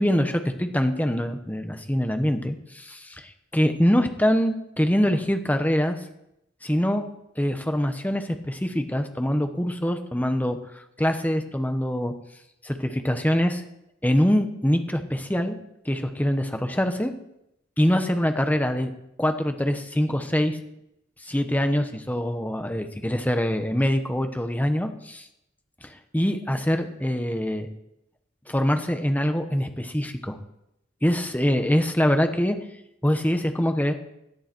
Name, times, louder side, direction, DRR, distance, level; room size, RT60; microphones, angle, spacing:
voice 1, 0.0-6.0 6.6-7.0 7.4-12.1 12.6-13.6 14.0-15.6 15.8-17.1 17.8-18.9 19.2-20.6 21.2-25.3 25.8-27.7 28.5-30.4 31.0-32.6 33.0-33.9, equal, 10° left, 7 dB, 1.2 m, -24 dB
18.0 x 11.5 x 4.6 m, 0.82 s
head